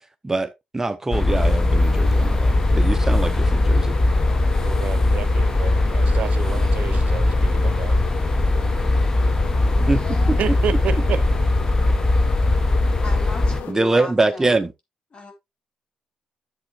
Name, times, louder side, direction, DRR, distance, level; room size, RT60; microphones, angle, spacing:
voice 1, 0.2-4.0 9.8-10.4 13.7-14.7, right 2 dB, 20° right, 0.8 m, -23 dB
sound 1, 1.1-13.6, left 2 dB, 20° left, 1.1 m, -19 dB
sound 2, 1.3-13.7, left 8 dB, 75° left, 1.3 m, -35 dB
voice 2, 4.6-8.0 10.4-11.2, right 9 dB, 70° right, 0.7 m, -30 dB
voice 3, 9.9-10.4 13.0-14.5 15.1-15.3, left 3 dB, 45° left, 4.1 m, -36 dB
11.5 x 7.4 x 2.5 m
supercardioid pair, 65°, 2 cm